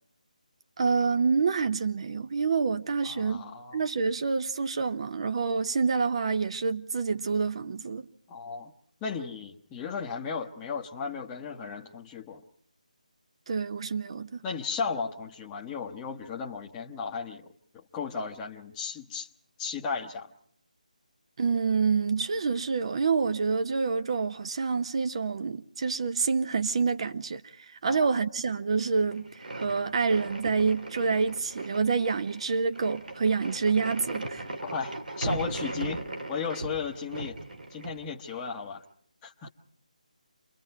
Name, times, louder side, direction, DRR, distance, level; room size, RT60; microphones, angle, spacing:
voice 1, 0.8-3.4 3.7-8.1 13.5-14.4 21.4-34.5, right 5 dB, 45° right, 0.8 m, -27 dB
voice 2, 3.0-3.8 8.3-8.7 9.0-12.4 14.4-17.5 17.7-19.3 19.6-20.3 27.8-28.1 34.6-36.0 36.3-37.4 37.7-38.8 39.2-39.5, left 5 dB, 15° left, 0.9 m, -35 dB
sound 1, 29.1-38.5, right 2 dB, 85° right, 3.4 m, -38 dB
28.0 x 22.5 x 4.6 m
figure-of-eight pair, 160°, 4 cm